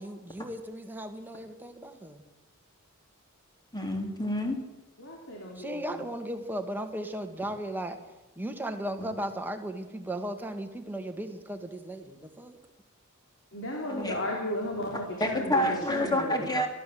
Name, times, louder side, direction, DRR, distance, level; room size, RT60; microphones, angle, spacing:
voice 1, 0.0-2.2 5.6-8.0 8.4-12.6, right 1 dB, 10° right, 5 dB, 1.9 m, -36 dB
voice 2, 3.7-4.6 9.0-9.1 13.9-14.2 15.2-16.7, left 1 dB, 20° left, 3 dB, 3.5 m, -28 dB
voice 3, 5.0-6.1 13.5-16.3, left 1 dB, 60° left, -1 dB, 4.2 m, -35 dB
29.5 x 13.0 x 7.9 m, 1.1 s
head